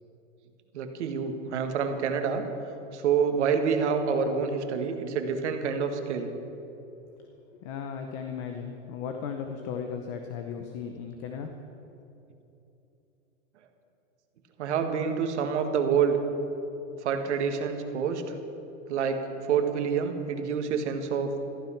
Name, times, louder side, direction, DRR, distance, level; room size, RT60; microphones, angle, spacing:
voice 1, 0.7-2.4 2.9-6.3 14.6-16.2 17.0-18.4 18.9-21.3, right 6 dB, 60° right, 5 dB, 1.8 m, -27 dB
voice 2, 7.6-11.5, left 7 dB, 25° left, 5 dB, 0.7 m, -36 dB
15.0 x 14.0 x 5.9 m, 3.0 s
hypercardioid pair, 160°, 39 cm